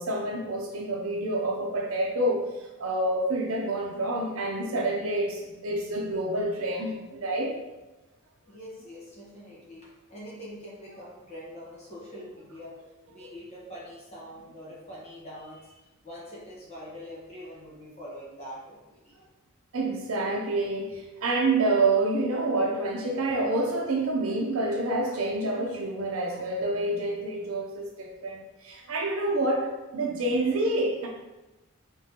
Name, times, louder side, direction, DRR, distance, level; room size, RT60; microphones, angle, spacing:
voice 1, 0.0-2.5 2.8-7.6 19.7-31.1, right 2 dB, 75° right, 1 dB, 0.6 m, -28 dB
voice 2, 8.5-12.8 13.1-19.1, equal, 30° left, -7 dB, 1.3 m, -44 dB
3.9 x 3.6 x 2.9 m, 1.0 s
head